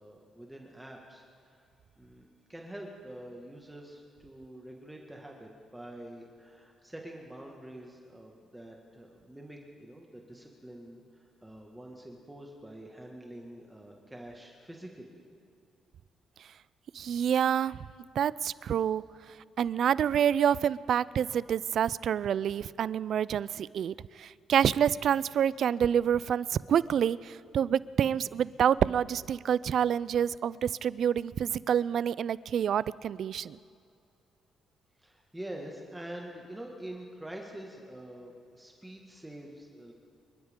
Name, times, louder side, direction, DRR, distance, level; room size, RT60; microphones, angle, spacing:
voice 1, 0.0-1.7 2.0-15.2 35.0-39.9, right 1 dB, 10° right, 0 dB, 1.8 m, -46 dB
voice 2, 16.9-17.8 18.2-19.0 19.6-33.6, right 9 dB, 65° right, 20 dB, 0.3 m, -27 dB
26.0 x 13.0 x 3.7 m, 2.5 s
cardioid pair, 90°, 0 cm